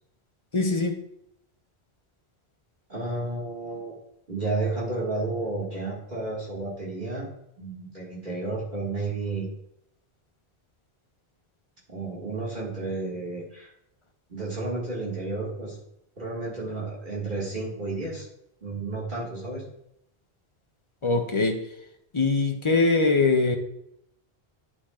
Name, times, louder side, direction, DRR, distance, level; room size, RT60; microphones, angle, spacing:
voice 1, 0.5-1.0 21.0-21.6 22.1-23.6, left 3 dB, 35° left, 0.6 m, -22 dB
voice 2, 2.9-3.9 4.3-7.3 7.6-9.5 11.9-13.7 14.3-15.8 16.2-18.3 18.6-19.6, right 3 dB, 50° right, 2.1 m, -32 dB
11.0 x 5.8 x 2.4 m
omnidirectional pair, 1.1 m